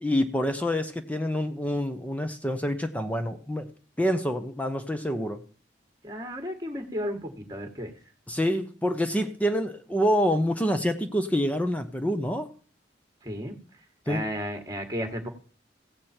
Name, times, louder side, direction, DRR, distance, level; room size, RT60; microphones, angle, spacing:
voice 1, 0.0-3.7 4.0-5.4 8.3-12.5 14.1-14.2, equal, 10° left, 8 dB, 0.8 m, -27 dB
voice 2, 6.0-7.9 13.2-13.5 14.0-15.3, equal, 20° right, 5 dB, 1.7 m, -33 dB
16.0 x 8.4 x 4.4 m, 0.41 s
head